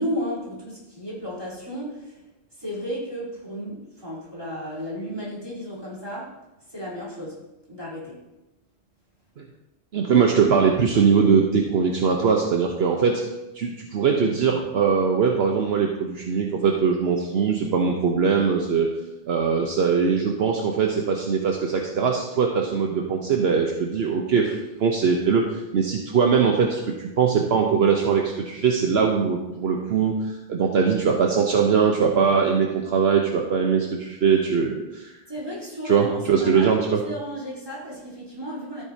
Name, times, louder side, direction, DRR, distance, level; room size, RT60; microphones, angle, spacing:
voice 1, 0.0-2.2 2.6-6.4 6.7-8.2 35.3-36.7 37.0-38.8, equal, 20° right, -7 dB, 3.6 m, -33 dB
voice 2, 9.9-13.2 13.6-18.9 19.3-35.1 35.8-37.0, right 6 dB, 65° right, 1 dB, 1.0 m, -21 dB
13.5 x 8.4 x 2.7 m, 0.98 s
omnidirectional pair, 1.2 m